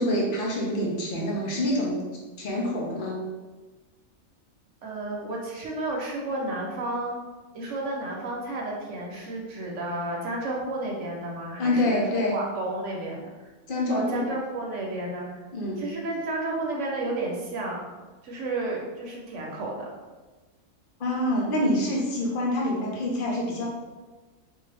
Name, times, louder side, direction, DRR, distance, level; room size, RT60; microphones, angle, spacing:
voice 1, 0.0-2.0 2.4-3.2 11.6-12.4 13.7-14.3 15.5-15.8 21.0-23.7, left 1 dB, 45° left, -2 dB, 0.9 m, -26 dB
voice 2, 4.8-7.2 7.5-13.3 13.9-15.3 15.8-17.8 18.2-19.9, right 2 dB, 65° right, -1 dB, 1.1 m, -32 dB
4.3 x 2.7 x 3.3 m, 1.3 s
omnidirectional pair, 1.4 m